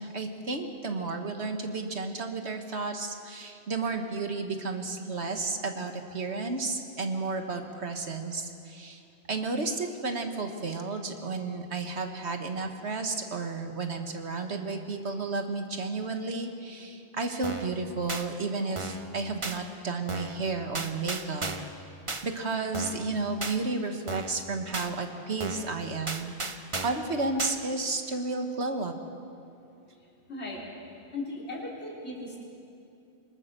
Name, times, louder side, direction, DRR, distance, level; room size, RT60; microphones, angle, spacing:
voice 1, 0.0-9.0 9.3-21.5 22.2-26.3 26.8-28.9, right 3 dB, 70° right, 5 dB, 1.9 m, -32 dB
sound 1, 17.4-17.7 18.1-18.2 18.8-19.1 19.4-19.6 20.1-20.4 20.7-21.7 22.1-22.2 22.7-23.1 23.4-23.6 24.1-24.4 24.7-24.9 25.4-25.7 26.1-27.0 27.4-27.6, right 3 dB, 30° right, 1.0 m, -35 dB
voice 2, 30.3-30.6 31.1-32.4, left 2 dB, 70° left, -4 dB, 3.9 m, -37 dB
24.0 x 20.5 x 6.9 m, 2.6 s
omnidirectional pair, 1.2 m